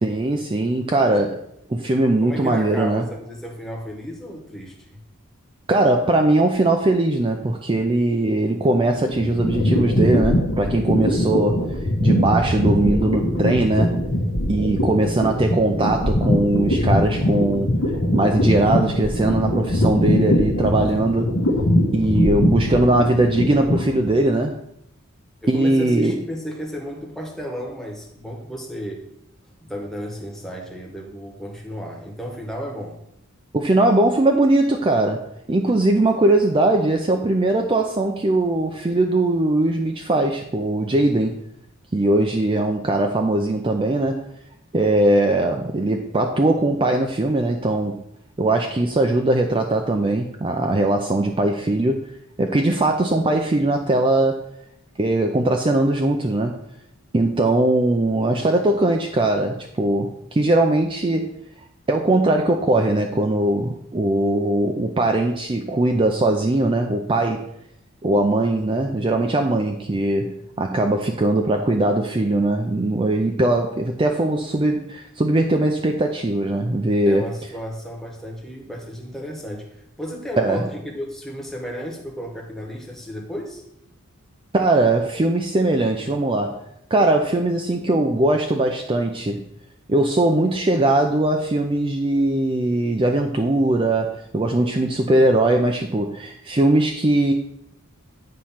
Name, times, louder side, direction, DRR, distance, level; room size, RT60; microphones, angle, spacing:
voice 1, 0.0-1.4 1.7-3.0 5.7-11.7 12.0-14.0 14.5-17.7 18.1-21.3 21.9-24.6 25.5-26.2 33.5-41.4 41.9-44.2 44.7-48.0 48.4-52.0 52.4-54.4 55.0-56.6 57.1-61.3 61.9-67.5 68.0-77.3 80.4-80.7 84.5-89.4 89.9-97.3, right 2 dB, 25° right, 3 dB, 0.4 m, -20 dB
voice 2, 2.2-5.0 25.4-29.0 29.6-33.0 77.0-83.6, equal, ahead, -1 dB, 1.1 m, -33 dB
sound 1, 8.9-24.2, left 1 dB, 60° left, 1.0 m, -21 dB
8.6 x 3.1 x 5.6 m, 0.76 s
head